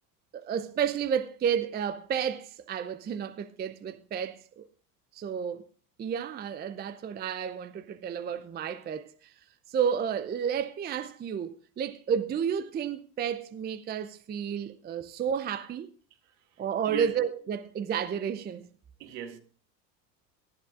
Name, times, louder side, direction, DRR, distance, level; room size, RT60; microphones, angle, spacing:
voice 1, 0.3-4.7 5.1-5.6 6.0-9.3 9.7-15.9 16.6-18.7, right 8 dB, 20° right, 0.5 m, -31 dB
voice 2, 16.2-17.1 19.0-19.4, right 10 dB, 65° right, 2.0 m, -40 dB
18.5 x 12.0 x 2.4 m
hypercardioid pair, 85°, 49 cm